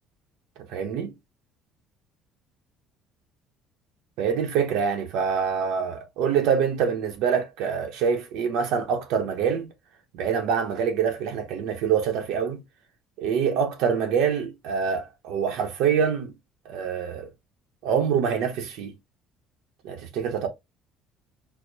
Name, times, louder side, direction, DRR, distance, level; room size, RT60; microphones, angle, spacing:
voice 1, 0.7-1.1 4.2-9.7 10.1-12.6 13.2-16.3 16.7-17.3 17.8-18.9 19.8-20.5, right 7 dB, 75° right, 0.7 m, -25 dB
4.5 x 2.0 x 2.6 m
cardioid pair, 160°, 0 cm